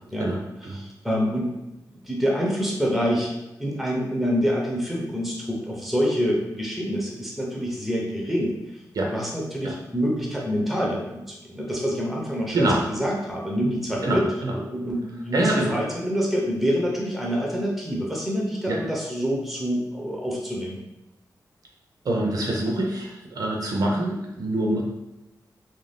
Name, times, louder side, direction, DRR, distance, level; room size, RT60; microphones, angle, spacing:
voice 1, 0.2-0.8 8.9-9.1 9.6-9.7 12.5-12.8 14.0-14.5 15.3-15.8 18.7-18.8 22.0-24.8, right 1 dB, 60° right, -1 dB, 0.5 m, -25 dB
voice 2, 0.7-1.6 2.0-8.6 9.1-12.7 13.0-14.3 14.5-20.8, equal, ahead, -3 dB, 0.5 m, -26 dB
2.5 x 2.2 x 3.3 m, 0.95 s
wide cardioid pair, 175°, 7 cm